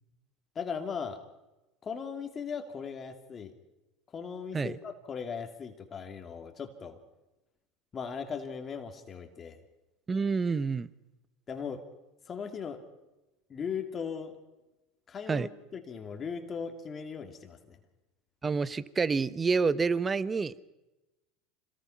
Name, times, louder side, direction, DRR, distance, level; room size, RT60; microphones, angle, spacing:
voice 1, 0.5-1.2 1.8-3.5 4.1-7.0 7.9-9.6 11.5-11.8 12.3-12.8 13.5-14.4 15.1-17.6, left 6 dB, 30° left, 5 dB, 2.6 m, -38 dB
voice 2, 10.1-10.9 15.3-15.5 18.4-20.6, right 4 dB, 20° right, 17 dB, 0.9 m, -28 dB
26.0 x 19.5 x 5.8 m, 1.0 s
hypercardioid pair, 95°, 0 cm